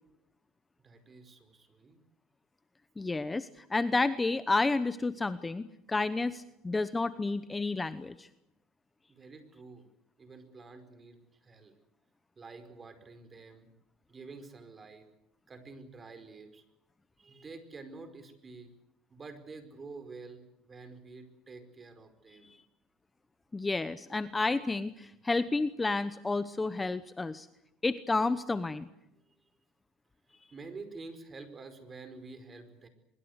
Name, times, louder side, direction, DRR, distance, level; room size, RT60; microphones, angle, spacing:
voice 1, 0.8-2.0 9.1-9.9 10.2-11.7 12.3-13.7 14.1-15.1 15.5-16.6 17.2-18.7 19.1-22.5 23.7-23.8 30.5-32.9, right 3 dB, 25° right, 9 dB, 4.9 m, -48 dB
voice 2, 3.0-8.3 23.5-27.5 27.8-28.9, left 3 dB, 15° left, 13 dB, 0.9 m, -31 dB
24.0 x 23.0 x 8.1 m, 0.85 s
supercardioid pair, 100°, 0 cm